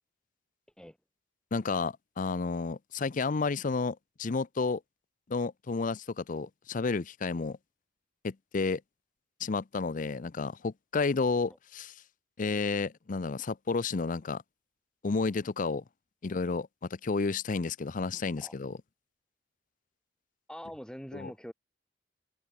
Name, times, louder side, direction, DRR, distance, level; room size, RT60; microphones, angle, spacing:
voice 1, 1.5-4.8 5.3-7.6 8.2-8.8 9.4-11.9 12.4-14.4 15.0-15.8 16.2-16.7 17.0-18.8 21.1-21.3, left 4 dB, 45° left, 0.5 m, -31 dB
voice 2, 20.5-21.5, equal, 5° left, 2.5 m, -43 dB
head